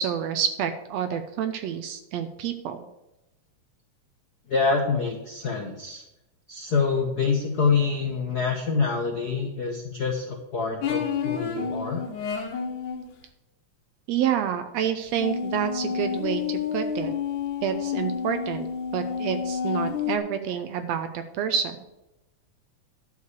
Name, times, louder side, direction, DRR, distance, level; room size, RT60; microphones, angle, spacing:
voice 1, 0.0-2.9 14.1-17.1 17.6-18.7 18.9-21.8, right 8 dB, 75° right, 9 dB, 1.7 m, -28 dB
voice 2, 4.5-6.0 6.5-12.0, left 5 dB, 65° left, 2 dB, 0.9 m, -26 dB
sound 1, 10.8-13.1 15.1-20.2, left 6 dB, 85° left, 2.6 m, -29 dB
11.5 x 5.0 x 8.1 m, 0.93 s
omnidirectional pair, 3.4 m